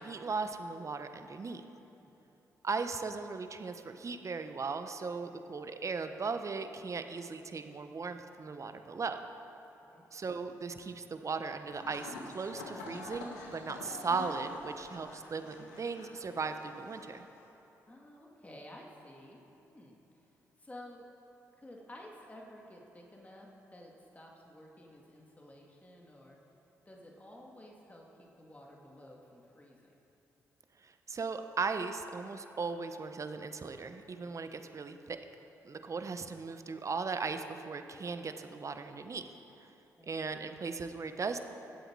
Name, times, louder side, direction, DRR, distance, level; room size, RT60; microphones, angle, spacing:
voice 1, 0.0-1.6 2.6-9.2 10.1-17.3 30.8-35.2 35.6-39.2 40.1-41.4, right 4 dB, 45° right, 8 dB, 1.0 m, -37 dB
sound 1, 11.7-17.5, left 3 dB, 90° left, 1.3 m, -47 dB
voice 2, 17.9-20.0 20.6-21.1 21.5-26.4 26.9-29.9 34.1-34.3 40.0-40.2, left 1 dB, 20° left, -1 dB, 2.3 m, -53 dB
21.0 x 7.9 x 4.7 m, 2.9 s
hypercardioid pair, 45°, 8 cm